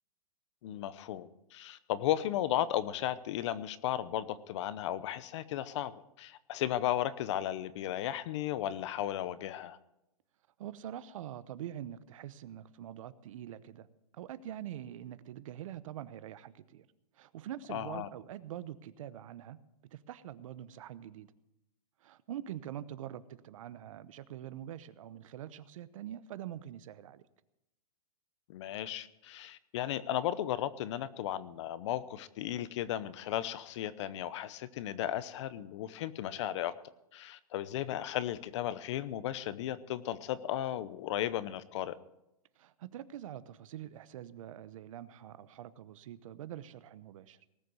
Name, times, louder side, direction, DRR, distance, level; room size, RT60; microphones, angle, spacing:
voice 1, 0.6-9.8 17.7-18.1 28.5-36.7 37.1-41.9, left 12 dB, 50° left, 15 dB, 0.9 m, -35 dB
voice 2, 10.6-13.9 14.1-16.9 17.2-19.6 19.9-21.3 22.0-27.2 42.6-47.4, right 11 dB, 60° right, 15 dB, 0.9 m, -44 dB
19.0 x 6.8 x 7.8 m, 0.88 s
hypercardioid pair, 150°, 19 cm